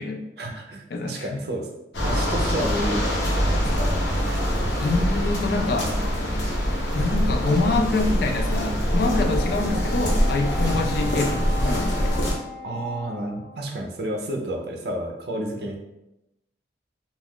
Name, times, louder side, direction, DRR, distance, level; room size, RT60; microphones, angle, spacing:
voice 1, 0.4-1.7 2.0-3.9 10.7-10.9 12.6-15.8, right 1 dB, 60° right, 1 dB, 0.5 m, -31 dB
voice 2, 0.9-1.3 4.8-5.9 6.9-12.1, left 3 dB, 55° left, 4 dB, 0.3 m, -25 dB
sound 1, 1.9-12.3, equal, 75° left, 0.7 m, -24 dB
Wind instrument woodwind instrument, 9.1-13.7, left 4 dB, ahead, 0.7 m, -38 dB
2.3 x 2.3 x 3.5 m, 0.91 s
head